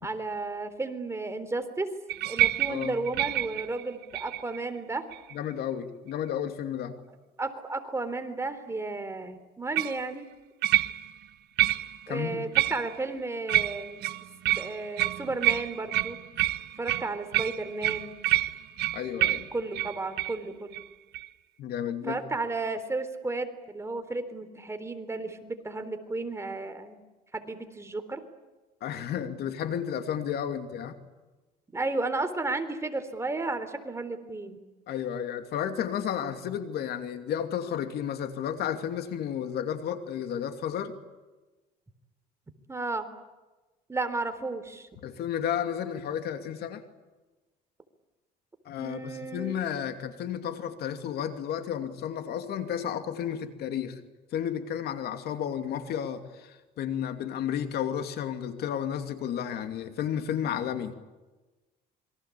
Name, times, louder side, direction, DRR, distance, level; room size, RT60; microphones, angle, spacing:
voice 1, 0.0-1.9 2.3-5.0 7.4-10.3 12.1-14.1 14.5-16.2 16.8-18.2 19.5-20.8 21.9-27.0 27.3-28.2 31.7-34.6 42.7-43.1 43.9-44.9 48.8-49.5, right 3 dB, 15° right, 8 dB, 3.7 m, -33 dB
sound 1, 2.1-4.6 5.1-5.5 9.8-10.0 10.6-11.2 11.6-12.1 12.5-13.1 13.5-20.4 20.7-20.9 21.1-21.3, right 15 dB, 80° right, 1.4 m, -28 dB
voice 2, 5.3-7.0 12.1-12.5 18.9-19.5 21.6-22.2 28.8-30.9 34.9-40.9 45.0-46.8 48.7-54.0 54.3-60.9, left 9 dB, 70° left, 7 dB, 2.7 m, -32 dB
27.5 x 23.5 x 8.6 m, 1.2 s
cardioid pair, 110°, 17 cm